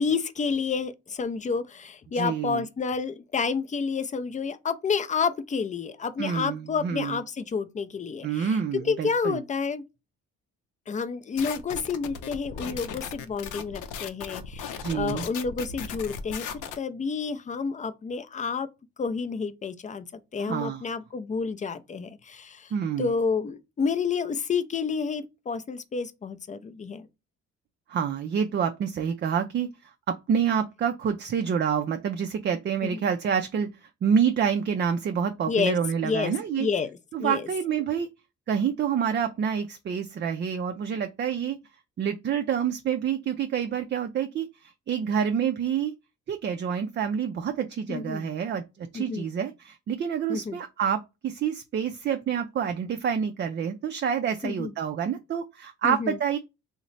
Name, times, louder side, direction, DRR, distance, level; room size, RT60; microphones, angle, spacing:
voice 1, 0.0-9.8 10.9-16.4 16.7-18.7 19.0-20.0 20.3-22.7 23.0-27.1 32.8-33.0 35.5-36.9 37.2-37.4 47.9-48.3 48.9-49.3 50.3-50.6 54.4-54.7 55.8-56.2, left 5 dB, 25° left, 0.4 m, -29 dB
voice 2, 2.1-2.7 6.2-7.2 8.2-9.4 14.8-15.3 20.4-20.8 22.7-23.1 27.9-36.7 37.1-38.1 38.5-41.6 42.0-45.9 46.3-56.4, right 7 dB, 35° right, 0.4 m, -28 dB
sound 1, 11.4-16.8, left 6 dB, 85° left, 0.5 m, -37 dB
3.0 x 2.1 x 3.9 m
cardioid pair, 90°, 30 cm